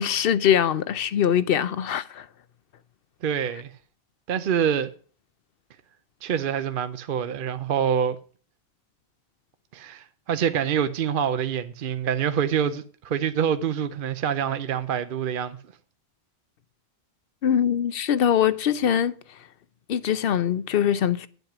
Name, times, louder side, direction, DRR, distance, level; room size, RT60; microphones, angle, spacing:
voice 1, 0.0-2.3 17.4-19.4 19.9-21.3, left 9 dB, 65° left, 0.8 m, -23 dB
voice 2, 3.2-3.7 4.3-4.9 6.2-8.2 9.7-15.6, right 8 dB, 60° right, 0.8 m, -26 dB
10.5 x 8.0 x 5.9 m
omnidirectional pair, 1.1 m